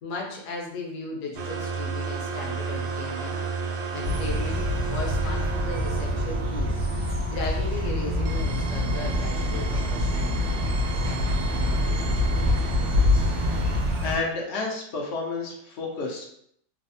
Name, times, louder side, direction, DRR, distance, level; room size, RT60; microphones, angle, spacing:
voice 1, 0.0-3.4 3.9-6.8 7.3-10.7 11.1-12.2, left 2 dB, 65° left, -1 dB, 0.9 m, -36 dB
sound 1, 1.3-13.8, right 3 dB, 75° right, 1.1 m, -32 dB
sound 2, 4.0-14.2, left 1 dB, 60° right, 0.8 m, -26 dB
voice 2, 14.0-16.3, left 3 dB, 85° left, -1 dB, 0.6 m, -30 dB
3.2 x 2.0 x 2.6 m, 0.69 s
omnidirectional pair, 1.9 m